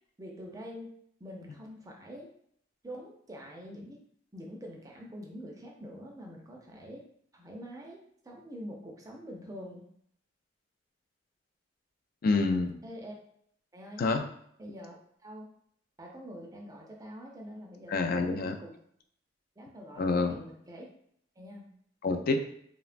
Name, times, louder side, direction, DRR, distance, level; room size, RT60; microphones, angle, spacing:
voice 1, 0.2-0.9 1.2-2.3 2.8-4.0 4.3-7.0 7.3-9.9 12.8-13.2 13.7-14.0 14.6-15.5 16.0-18.7 19.6-20.9 21.4-21.7, equal, 20° right, -1 dB, 0.4 m, -45 dB
voice 2, 12.2-12.8 14.0-14.2 17.9-18.6 20.0-20.4 22.0-22.4, left 3 dB, 50° left, 6 dB, 0.3 m, -27 dB
3.1 x 2.1 x 2.4 m, 0.67 s
head